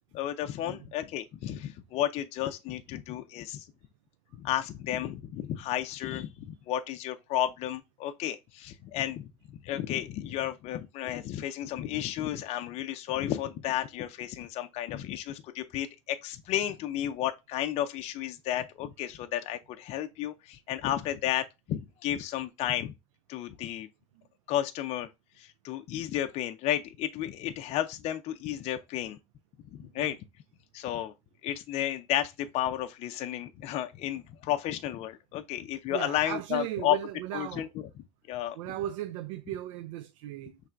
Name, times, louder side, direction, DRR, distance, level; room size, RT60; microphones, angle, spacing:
voice 1, 0.1-3.7 4.3-22.9 23.3-23.9 24.5-25.1 25.4-29.2 29.8-30.2 30.7-31.1 31.4-37.0 37.3-37.7 38.3-38.6, left 12 dB, 40° left, 0.5 m, -32 dB
voice 2, 29.8-30.2 35.9-37.7 38.5-40.6, right 12 dB, 85° right, 0.4 m, -37 dB
5.6 x 3.2 x 2.5 m
supercardioid pair, 130°, 16 cm